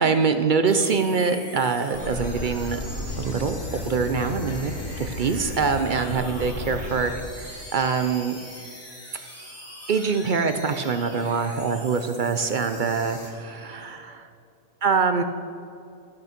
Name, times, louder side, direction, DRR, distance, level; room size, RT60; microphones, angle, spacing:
voice 1, 0.0-2.8 3.2-3.6 3.9-8.4 9.9-14.0 14.8-15.2, right 5 dB, 55° right, 8 dB, 0.5 m, -24 dB
sound 1, 0.6-13.3, equal, 10° left, 2.2 m, -42 dB
sound 2, 1.9-7.1, left 3 dB, 45° left, 1.3 m, -33 dB
13.5 x 6.2 x 5.9 m, 2.6 s
omnidirectional pair, 1.4 m